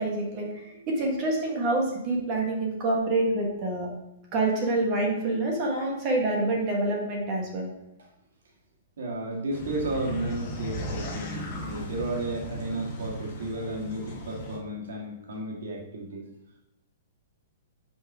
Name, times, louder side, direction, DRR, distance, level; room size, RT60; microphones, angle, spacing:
voice 1, 0.0-3.9 4.3-7.7, right 2 dB, 25° right, -1 dB, 1.5 m, -27 dB
voice 2, 9.0-16.2, right 1 dB, 85° right, -1 dB, 1.8 m, -33 dB
sound 1, 9.5-14.6, equal, 30° left, 1.2 m, -36 dB
6.8 x 5.6 x 3.6 m, 0.89 s
hypercardioid pair, 170°, 0 cm